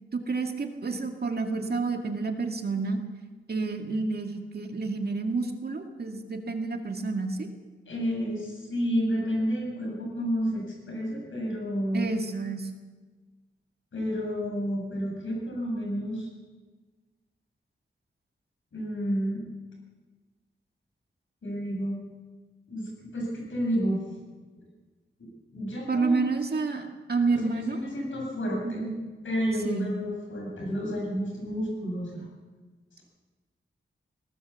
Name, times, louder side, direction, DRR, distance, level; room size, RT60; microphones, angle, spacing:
voice 1, 0.1-3.0 3.5-7.5 11.9-12.7 25.9-27.8 28.6-29.0 29.6-29.9, right 3 dB, 50° right, 4 dB, 2.1 m, -29 dB
voice 2, 7.9-12.1 13.9-16.3 18.7-19.4 21.4-22.0 22.7-24.0 25.2-26.4 27.3-28.8 29.2-32.3, equal, 75° left, -1 dB, 8.0 m, -30 dB
21.0 x 17.5 x 7.2 m, 1.3 s
wide cardioid pair, 135°, 21 cm